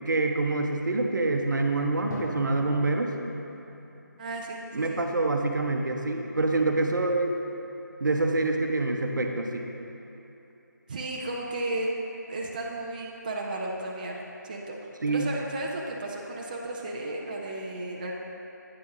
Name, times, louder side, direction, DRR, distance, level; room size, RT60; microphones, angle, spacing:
voice 1, 0.1-3.1 4.7-7.3 8.0-9.7 15.0-15.3, right 2 dB, 75° right, 3 dB, 0.7 m, -26 dB
Drum, 2.1-5.8, left 2 dB, 60° left, 1.0 m, -44 dB
voice 2, 4.2-5.0 10.9-11.9 12.3-14.8 15.1-18.1, right 2 dB, 25° right, -2 dB, 0.4 m, -34 dB
8.7 x 7.1 x 3.0 m, 3.0 s
figure-of-eight pair, 165°, 10 cm